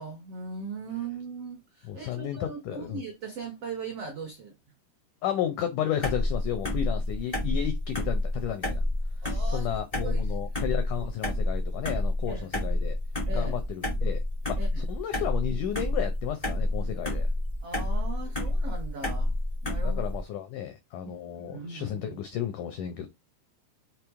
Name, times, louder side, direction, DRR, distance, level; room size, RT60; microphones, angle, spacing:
voice 1, 0.0-4.6 9.2-9.7 10.0-10.3 11.0-11.1 12.3-12.5 13.2-13.5 14.6-14.9 17.6-20.0 21.0-22.2, right 4 dB, 80° right, 1.3 m, -39 dB
voice 2, 1.9-3.0 5.2-8.8 9.5-13.0 13.3-14.2 14.5-17.3 19.8-23.1, left 10 dB, 85° left, 1.7 m, -33 dB
sound 1, 6.0-20.2, left 1 dB, 40° left, 0.5 m, -29 dB
6.7 x 3.1 x 4.7 m
omnidirectional pair, 4.6 m